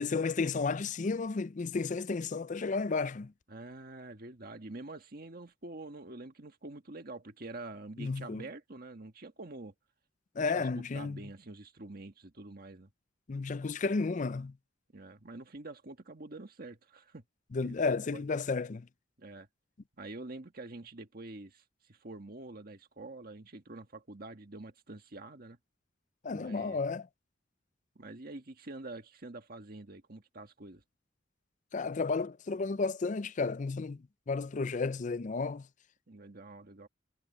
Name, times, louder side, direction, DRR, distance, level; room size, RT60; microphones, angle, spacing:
voice 1, 0.0-3.3 8.0-8.5 10.4-11.2 13.3-14.6 17.5-18.9 26.2-27.1 31.7-35.7, left 4 dB, 40° left, 0.4 m, -32 dB
voice 2, 3.5-9.7 10.5-12.9 14.9-17.2 17.6-17.8 18.1-18.2 19.2-19.5 20.0-21.6 21.9-25.6 26.3-26.8 28.0-30.8 36.1-36.9, right 2 dB, 50° right, 1.6 m, -46 dB
head